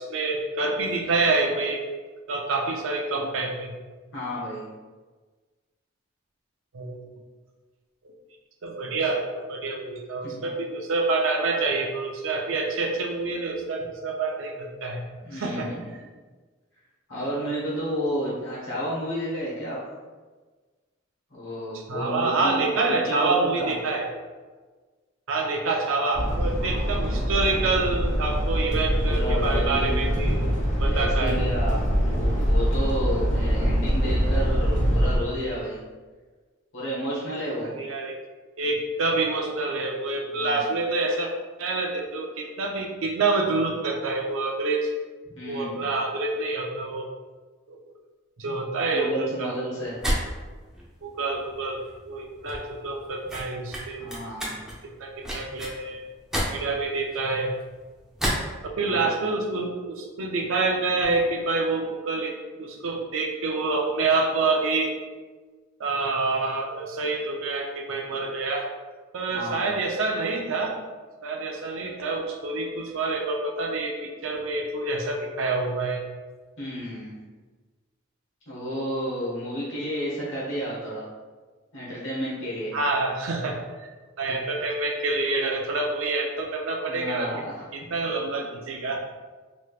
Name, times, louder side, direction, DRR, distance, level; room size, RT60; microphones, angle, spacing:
voice 1, 0.0-1.8 2.3-3.7 6.7-7.0 8.0-8.1 8.6-15.0 15.3-15.7 21.7-24.1 25.3-30.5 30.8-31.4 37.6-38.2 38.6-41.3 41.6-44.9 45.5-47.1 47.7-47.9 48.4-49.5 51.0-51.8 52.1-54.1 55.0-56.0 56.5-57.5 58.6-64.9 65.8-68.7 69.1-70.7 71.2-76.0 82.7-83.9 84.2-87.3 87.7-89.0, right 3 dB, 75° right, 1 dB, 0.5 m, -27 dB
voice 2, 4.1-4.7 10.3-10.4 15.2-15.9 17.1-19.9 21.3-23.7 26.6-27.2 29.0-30.0 30.9-31.8 32.1-35.8 36.7-37.7 40.3-40.6 45.4-45.9 48.4-48.6 48.9-50.0 54.0-54.6 58.8-59.1 69.3-69.7 76.6-77.2 78.5-81.0 81.7-82.7 86.9-87.7, equal, 65° left, -8 dB, 1.2 m, -31 dB
sound 1, 26.1-35.2, equal, 35° left, 0.8 m, -24 dB
sound 2, 49.8-58.5, equal, 5° right, 0.5 m, -32 dB
3.2 x 3.0 x 2.3 m, 1.3 s
head